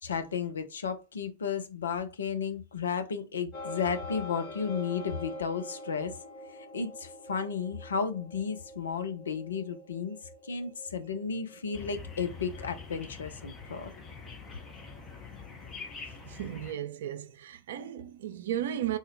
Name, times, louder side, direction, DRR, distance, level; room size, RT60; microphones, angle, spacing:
voice 1, 0.0-6.1 6.7-13.9, left 6 dB, 70° left, 0.5 m, -33 dB
sound 1, 3.5-12.8, left 1 dB, 45° left, 1.2 m, -45 dB
sound 2, 11.7-16.7, left 5 dB, 25° left, 0.7 m, -45 dB
voice 2, 16.2-19.0, right 11 dB, 60° right, 0.4 m, -35 dB
3.7 x 2.1 x 2.5 m
figure-of-eight pair, 90°, 0 cm